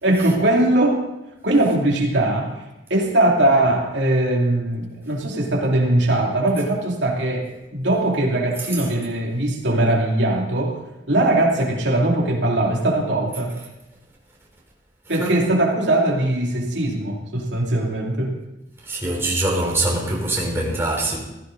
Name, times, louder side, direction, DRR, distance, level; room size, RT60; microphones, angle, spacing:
voice 1, 0.0-1.0 1.4-2.5 2.9-10.8 11.1-13.6 15.1-18.3, right 1 dB, 80° right, 2.6 m, -20 dB
voice 2, 18.9-21.2, right 2 dB, 15° right, 3.5 m, -23 dB
15.5 x 14.5 x 3.9 m
head